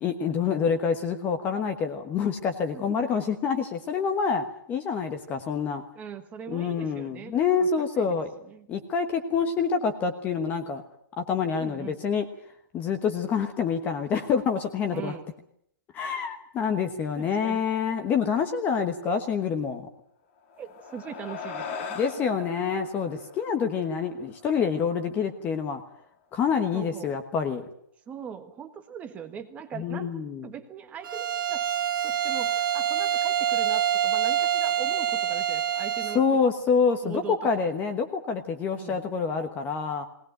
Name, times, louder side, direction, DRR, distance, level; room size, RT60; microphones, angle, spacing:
voice 1, 0.0-5.8 6.5-8.3 8.7-10.8 11.2-12.2 12.7-15.1 15.9-19.9 21.9-25.8 26.3-27.7 29.7-30.5 36.1-40.0, left 6 dB, 15° left, 7 dB, 1.2 m, -27 dB
voice 2, 5.9-8.2 8.5-8.7 11.6-12.0 14.9-15.3 17.2-17.6 20.6-22.0 22.2-22.4 26.7-27.2 28.1-30.1 30.4-31.7 32.0-36.2 37.0-37.6 38.7-39.0, right 8 dB, 10° right, 7 dB, 1.4 m, -40 dB
sound 1, 20.4-25.1, left 5 dB, 35° left, 2.7 m, -40 dB
Bowed string instrument, 31.0-36.3, right 10 dB, 70° right, 1.5 m, -26 dB
20.0 x 19.0 x 9.1 m, 0.68 s
hypercardioid pair, 170°, 11 cm